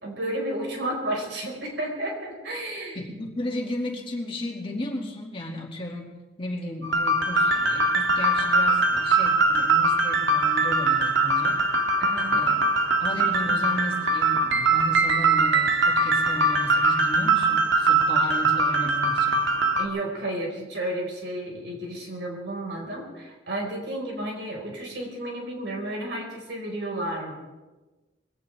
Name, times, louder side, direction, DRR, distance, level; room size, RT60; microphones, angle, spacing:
voice 1, 0.0-3.0 12.0-12.6 19.8-27.3, right 1 dB, 70° right, 0 dB, 4.9 m, -32 dB
voice 2, 2.9-11.6 12.3-12.6 13.0-19.4, left 1 dB, 30° left, -1 dB, 2.4 m, -34 dB
sound 1, 6.8-19.9, right 2 dB, 90° right, 1.6 m, -22 dB
21.5 x 17.0 x 3.5 m, 1.2 s
head